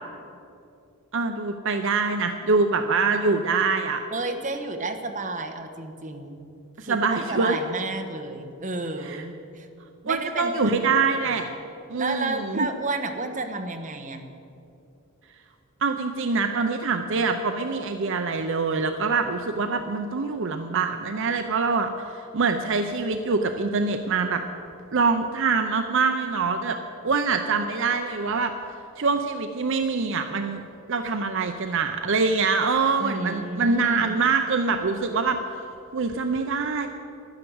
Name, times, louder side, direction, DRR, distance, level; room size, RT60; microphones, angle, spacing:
voice 1, 1.1-4.0 6.8-7.6 9.0-9.2 10.1-11.5 11.9-12.7 15.8-24.4 24.9-26.8 27.0-28.5 29.0-30.6 30.9-35.4 35.9-36.9, right 4 dB, 60° right, 6 dB, 0.6 m, -24 dB
voice 2, 4.1-6.4 6.8-9.7 10.0-10.8 11.3-11.4 12.0-14.2 33.0-34.2, right 2 dB, 35° right, 4 dB, 1.1 m, -31 dB
11.5 x 10.5 x 7.9 m, 2.7 s
head